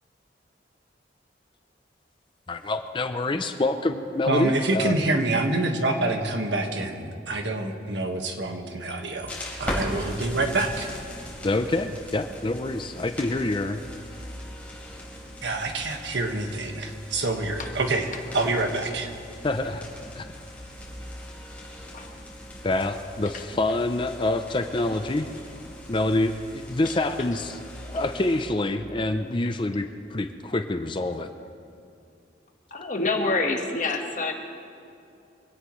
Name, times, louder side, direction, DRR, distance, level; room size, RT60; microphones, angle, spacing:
voice 1, 2.5-5.1 11.4-13.8 19.4-19.9 20.2-20.3 22.6-25.3 25.9-31.3, left 2 dB, 25° left, 8 dB, 0.5 m, -26 dB
voice 2, 4.3-9.3 9.6-10.9 15.4-19.1, right 2 dB, 75° right, 4 dB, 1.6 m, -26 dB
sound 1, 9.2-28.4, left 1 dB, 10° left, 3.9 m, -39 dB
voice 3, 32.7-34.3, left 3 dB, 45° left, 3 dB, 1.5 m, -26 dB
24.5 x 17.5 x 3.2 m, 2.5 s
head